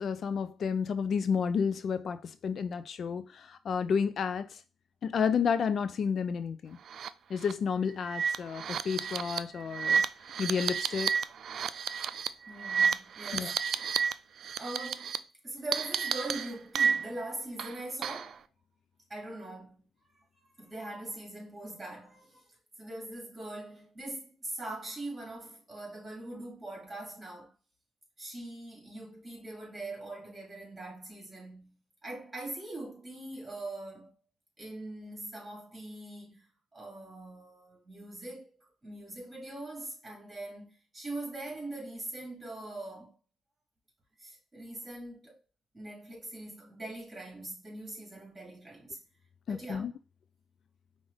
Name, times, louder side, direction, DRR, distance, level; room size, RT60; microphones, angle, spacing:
voice 1, 0.0-4.6 5.0-6.8 7.3-10.0 10.4-11.2 13.3-13.5 49.5-49.9, left 6 dB, 55° left, 0.3 m, -31 dB
sound 1, 6.9-7.1 7.4-7.5 8.0-14.1 14.4-15.2 15.7-17.2 17.6-18.3, right 6 dB, 60° right, 0.3 m, -31 dB
voice 2, 12.5-13.6 14.6-18.4 19.1-19.8 20.4-22.5 22.8-27.5 28.2-31.8 32.0-34.1 34.6-43.1 44.2-45.4 45.7-49.0 49.5-49.8, right 2 dB, 20° right, 2.6 m, -42 dB
5.3 x 2.5 x 3.3 m
cardioid pair, 90°, 0 cm